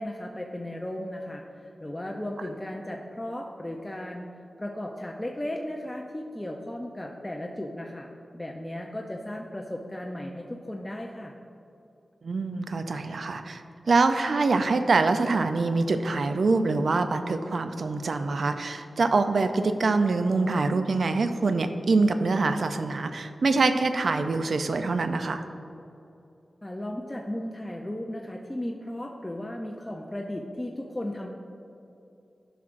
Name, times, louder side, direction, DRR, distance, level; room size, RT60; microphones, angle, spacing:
voice 1, 0.0-4.3 4.6-8.1 8.3-11.4 26.6-31.3, left 1 dB, 15° left, 0 dB, 0.5 m, -35 dB
voice 2, 12.2-25.4, right 3 dB, 70° right, 8 dB, 0.4 m, -25 dB
11.0 x 5.9 x 2.5 m, 2.7 s
wide cardioid pair, 70°, 0 cm